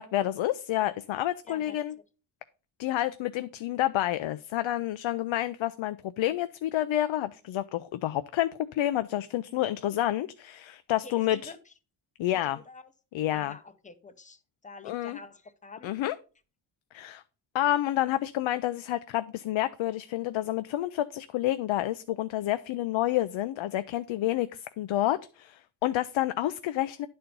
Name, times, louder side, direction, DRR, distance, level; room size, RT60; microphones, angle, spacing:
voice 1, 0.0-1.9 2.8-11.5 12.2-12.6 13.1-13.5 14.8-15.2 15.8-16.2 16.9-17.2 17.5-27.1, left 14 dB, 85° left, 0.6 m, -29 dB
voice 2, 1.5-2.0 11.0-11.6 12.3-12.9 13.3-16.0, left 3 dB, 15° left, 0.5 m, -47 dB
10.5 x 4.4 x 5.2 m
wide cardioid pair, 175°, 46 cm